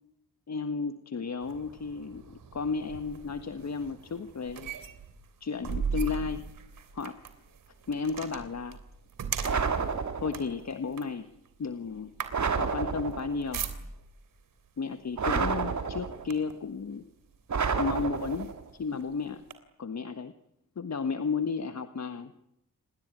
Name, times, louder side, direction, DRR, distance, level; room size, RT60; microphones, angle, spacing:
voice 1, 0.5-4.7 5.4-6.4 6.9-7.2 7.9-8.8 10.1-11.3 11.6-12.1 12.5-13.6 14.8-17.1 17.7-19.4 19.8-20.3 20.7-22.4, left 5 dB, 55° left, 9 dB, 1.6 m, -33 dB
sound 1, 1.4-14.2 15.1-15.3 15.7-16.7 17.3-17.4 17.9-19.5, right 5 dB, 80° right, 3.2 m, -39 dB
sound 2, 9.4-10.5 12.3-13.4 15.2-16.3 17.5-18.6, right 5 dB, 60° right, 2.8 m, -30 dB
27.5 x 20.5 x 9.1 m, 0.80 s
cardioid pair, 55°, 32 cm